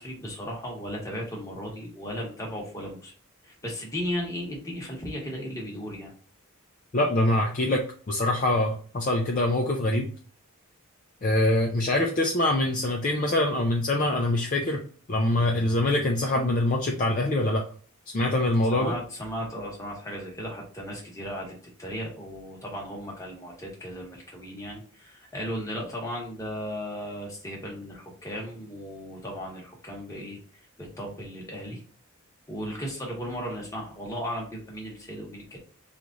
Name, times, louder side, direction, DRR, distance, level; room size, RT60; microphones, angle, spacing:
voice 1, 0.0-3.1 3.4-6.1 18.7-31.8 32.5-35.6, equal, 15° left, -2 dB, 1.0 m, -36 dB
voice 2, 6.9-10.1 11.2-14.8 15.1-17.6 18.1-18.9, left 1 dB, 35° left, 0 dB, 0.4 m, -24 dB
3.1 x 2.4 x 3.8 m, 0.42 s
head